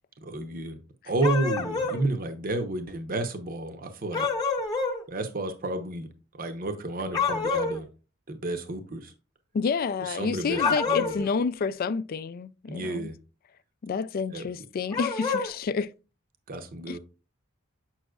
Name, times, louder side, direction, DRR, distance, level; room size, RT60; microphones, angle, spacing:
voice 1, 0.2-0.8 1.0-4.3 5.1-6.1 6.3-7.9 8.3-9.1 10.0-10.6 10.9-11.1 12.7-13.2 14.3-14.4 16.5-17.0, right 2 dB, 45° right, 0.8 m, -31 dB
sound 1, 1.2-2.0 4.1-5.0 7.1-7.8 10.5-11.3 14.9-15.5, left 4 dB, 20° left, 0.8 m, -27 dB
voice 2, 9.5-13.1 13.8-15.9 16.9-17.0, left 5 dB, 45° left, 0.3 m, -29 dB
7.0 x 6.2 x 2.3 m
head